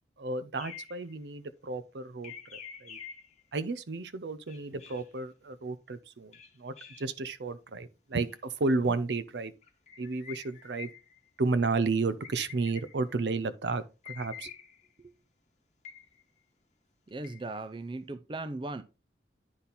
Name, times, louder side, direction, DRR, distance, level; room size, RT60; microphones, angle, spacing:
voice 1, 0.2-2.3 2.8-3.0 3.5-9.5 10.0-10.9 11.4-14.5, right 3 dB, 75° right, 0.6 m, -32 dB
sound 1, 0.6-1.1 2.2-3.4 4.5-5.1 6.3-7.1 8.3-8.4 9.6-11.2 12.2-13.1 14.0-14.9 15.8-16.2 17.1-17.6, left 8 dB, 40° left, 1.1 m, -47 dB
voice 2, 17.1-18.8, right 2 dB, 25° right, 0.5 m, -38 dB
9.7 x 4.2 x 4.0 m
head